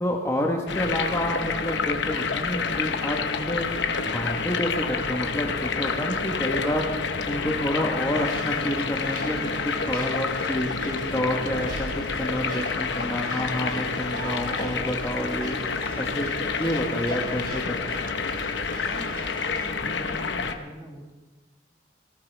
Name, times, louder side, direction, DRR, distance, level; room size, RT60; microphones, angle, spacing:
voice 1, 0.0-3.7 4.1-6.9 7.2-15.6 16.0-16.3 16.6-18.0, equal, 15° left, 0 dB, 1.2 m, -29 dB
sound 1, 0.7-20.5, left 4 dB, 75° left, 1.0 m, -29 dB
sound 2, 7.8-19.7, right 2 dB, 55° right, 3.6 m, -43 dB
voice 2, 18.8-21.1, equal, 20° right, 1 dB, 1.8 m, -42 dB
18.5 x 18.0 x 3.4 m, 1.3 s
head